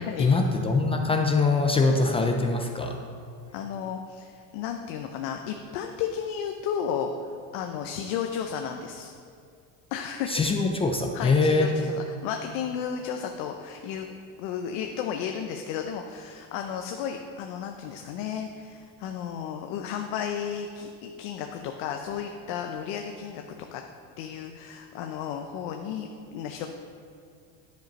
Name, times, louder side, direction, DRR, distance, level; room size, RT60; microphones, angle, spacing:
voice 1, 0.2-3.0 10.3-11.7, left 3 dB, 15° left, 3 dB, 0.4 m, -23 dB
voice 2, 3.5-7.1 7.5-9.1 9.9-10.3 11.1-14.1 14.4-23.4 23.7-23.8 24.2-26.7, left 8 dB, 75° left, 4 dB, 0.7 m, -33 dB
10.5 x 5.2 x 5.3 m, 2.3 s
cardioid pair, 140°, 37 cm